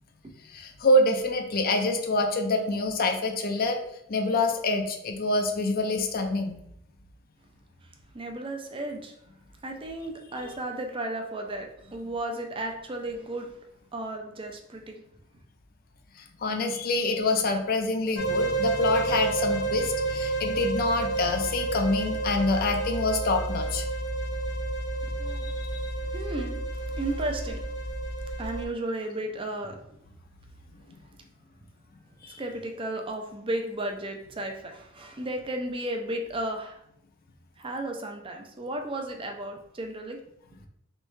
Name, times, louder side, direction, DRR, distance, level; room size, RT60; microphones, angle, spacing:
voice 1, 0.5-3.8 4.1-6.6 16.4-23.8 25.4-25.8 32.2-32.4, left 2 dB, 50° left, 4 dB, 0.5 m, -26 dB
voice 2, 7.8-9.2 9.6-13.6 13.9-15.0 25.0-25.5 26.0-27.8 28.4-30.0 32.2-36.8 37.6-40.2, right 1 dB, 25° right, 4 dB, 0.5 m, -34 dB
sound 1, 18.2-28.6, right 2 dB, 65° left, 0.8 m, -30 dB
3.6 x 3.2 x 3.2 m, 0.75 s
head